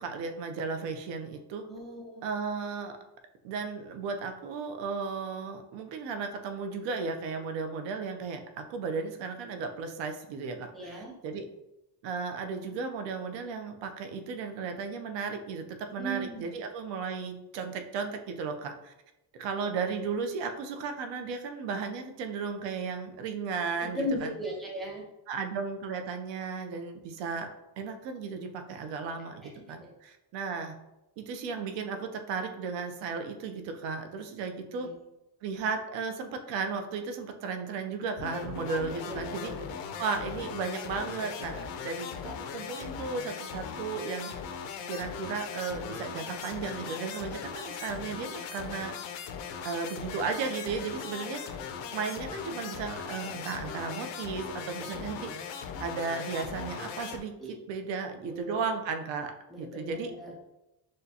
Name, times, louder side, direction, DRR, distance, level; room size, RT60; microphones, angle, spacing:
voice 1, 0.0-1.6 2.2-3.0 3.4-11.5 12.0-18.9 19.4-24.3 25.3-27.5 27.8-29.4 29.7-30.8 31.2-34.9 35.4-39.5 40.0-44.3 44.9-48.9 49.6-51.4 51.9-55.3 55.8-57.3 57.7-59.3 59.6-60.1, right 5 dB, 80° right, 6 dB, 0.7 m, -35 dB
voice 2, 1.7-2.3 10.7-11.1 16.0-16.4 23.8-25.0 29.5-29.9 34.8-34.9 39.0-39.5 44.8-44.9 54.8-54.9 57.4-57.5 58.2-58.7 59.5-60.3, equal, ahead, -4 dB, 0.6 m, -37 dB
sound 1, 38.2-57.2, left 7 dB, 80° left, 0.6 m, -39 dB
6.4 x 2.2 x 2.8 m, 0.92 s
cardioid pair, 165°, 43 cm